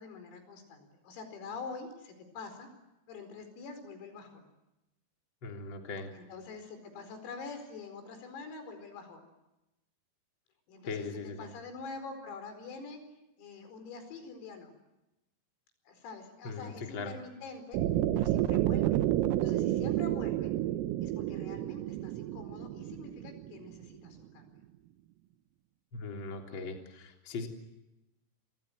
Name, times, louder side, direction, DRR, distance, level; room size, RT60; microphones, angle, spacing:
voice 1, 0.0-2.7 3.1-4.5 6.1-9.3 10.7-11.1 11.4-13.0 13.4-14.7 15.9-17.8 18.1-19.0 19.4-20.5 21.0-24.6, left 4 dB, 85° left, 8 dB, 7.4 m, -45 dB
voice 2, 5.4-6.1 10.8-11.5 16.4-17.1 25.9-27.5, left 4 dB, 25° left, 3 dB, 3.3 m, -39 dB
sound 1, 17.7-23.9, right 13 dB, 90° right, 3.9 m, -30 dB
29.5 x 25.5 x 7.9 m, 0.95 s
omnidirectional pair, 5.9 m